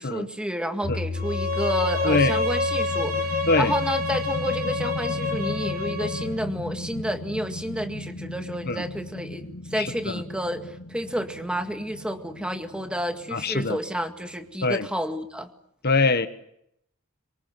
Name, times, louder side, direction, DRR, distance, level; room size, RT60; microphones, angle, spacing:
voice 1, 0.0-15.5, equal, 5° right, 2.0 m, -30 dB
sound 1, 0.8-11.1, left 3 dB, 70° right, 5.9 m, -37 dB
Bowed string instrument, 1.2-6.3, left 2 dB, 45° right, 4.1 m, -27 dB
sound 2, 2.2-14.4, left 1 dB, 85° left, 1.5 m, -38 dB
voice 2, 9.7-10.2 13.3-13.8 14.6-14.9 15.8-16.3, left 3 dB, 50° left, 1.3 m, -23 dB
25.5 x 24.0 x 7.9 m
head